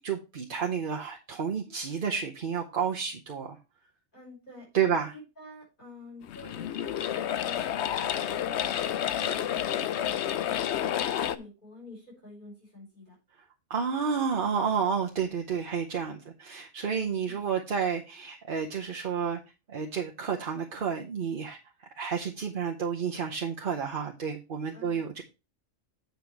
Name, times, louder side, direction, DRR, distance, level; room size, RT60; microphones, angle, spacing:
voice 1, 0.0-3.6 4.7-5.1 13.7-19.4 19.7-25.2, right 6 dB, 45° right, 1 dB, 0.9 m, -30 dB
voice 2, 4.1-10.6 10.9-13.1 17.2-17.4 24.7-25.2, left 1 dB, 35° left, -5 dB, 5.7 m, -49 dB
sound 1, 6.2-11.4, left 10 dB, 65° left, 0.8 m, -30 dB
8.8 x 5.2 x 4.6 m, 0.29 s
omnidirectional pair, 1.4 m